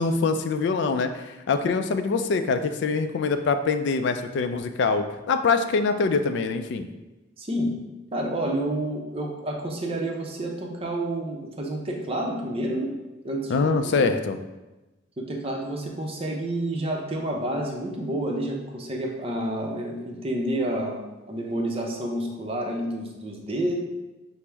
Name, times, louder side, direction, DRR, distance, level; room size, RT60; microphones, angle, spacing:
voice 1, 0.0-6.9 13.5-14.4, left 4 dB, 65° left, 8 dB, 0.3 m, -24 dB
voice 2, 7.4-7.7 8.1-12.9 13.2-14.1 15.2-21.0 21.3-23.7, right 1 dB, 30° right, 0 dB, 0.6 m, -29 dB
5.9 x 2.0 x 3.4 m, 1.1 s
head